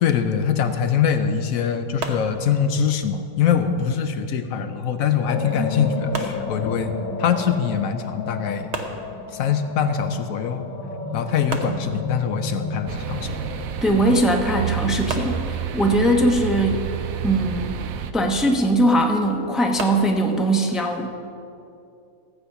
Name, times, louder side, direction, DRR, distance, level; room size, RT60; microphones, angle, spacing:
voice 1, 0.0-8.7 9.3-10.7 11.1-13.4, left 7 dB, 75° left, 8 dB, 1.1 m, -23 dB
sound 1, 2.0-3.0 6.1-7.2 8.7-9.7 11.5-12.5 15.1-16.1 19.8-20.3, right 3 dB, 55° right, 1.2 m, -34 dB
sound 2, 5.3-15.4, left 3 dB, 90° left, 1.5 m, -33 dB
sound 3, 12.9-18.1, right 8 dB, 75° right, 1.1 m, -29 dB
voice 2, 13.8-16.8 17.2-17.8 18.1-21.1, right 1 dB, ahead, 1 dB, 0.8 m, -20 dB
15.0 x 8.1 x 5.7 m, 2.6 s
omnidirectional pair, 1.5 m